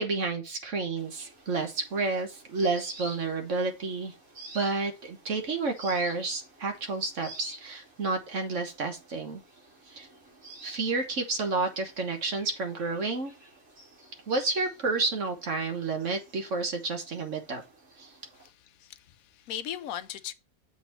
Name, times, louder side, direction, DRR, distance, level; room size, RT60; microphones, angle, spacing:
voice 1, 0.0-4.1 4.5-9.4 9.9-10.1 10.6-13.3 14.3-17.6 18.0-18.1, right 3 dB, 60° right, 1.6 m, -30 dB
sound 1, 1.0-18.5, right 1 dB, 80° right, 3.2 m, -50 dB
voice 2, 18.4-20.3, left 10 dB, 80° left, 1.1 m, -38 dB
7.3 x 4.0 x 4.4 m
omnidirectional pair, 1.4 m